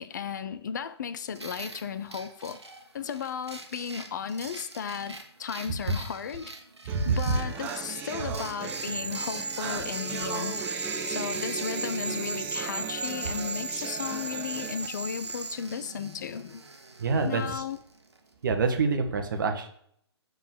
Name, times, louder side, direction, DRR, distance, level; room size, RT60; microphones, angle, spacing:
voice 1, 0.0-2.6 2.9-6.5 7.0-10.7 11.1-16.6 17.2-17.8, left 7 dB, 40° left, 0.5 m, -35 dB
sound 1, 1.3-18.3, right 3 dB, 75° right, 1.4 m, -44 dB
sound 2, 6.9-14.9, right 7 dB, 10° right, 0.4 m, -37 dB
voice 2, 6.9-7.3 17.0-17.6 18.4-19.7, right 4 dB, 50° right, 1.2 m, -26 dB
sound 3, 8.6-15.5, right 3 dB, 90° right, 0.4 m, -36 dB
7.2 x 4.0 x 6.6 m
figure-of-eight pair, 130°, 14 cm